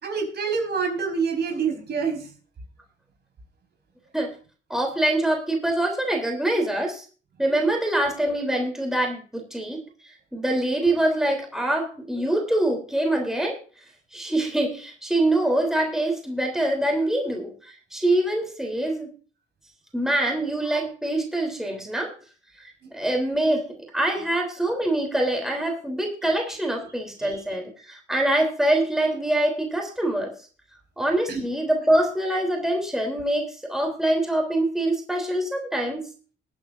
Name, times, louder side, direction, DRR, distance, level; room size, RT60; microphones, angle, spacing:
voice 1, 0.0-2.3 27.2-27.6 31.3-31.4, right 5 dB, 55° right, 3 dB, 5.0 m, -27 dB
voice 2, 4.7-7.0 7.4-9.8 10.3-13.6 14.1-19.1 19.9-22.1 22.6-30.3 31.0-36.0, right 1 dB, ahead, 2 dB, 3.5 m, -24 dB
21.5 x 8.9 x 2.7 m, 0.39 s
cardioid pair, 90°, 20 cm